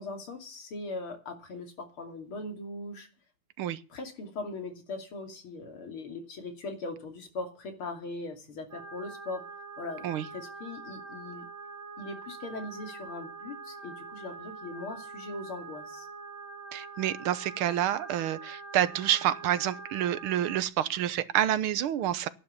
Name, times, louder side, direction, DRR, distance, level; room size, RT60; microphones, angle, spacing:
voice 1, 0.0-3.1 3.9-9.4 9.8-11.4 12.0-16.1, left 2 dB, 85° left, 3.6 m, -40 dB
sound 1, 8.7-20.6, right 4 dB, 35° right, 2.0 m, -44 dB
voice 2, 16.7-22.3, right 11 dB, 85° right, 1.8 m, -28 dB
11.5 x 11.0 x 7.0 m
omnidirectional pair, 2.3 m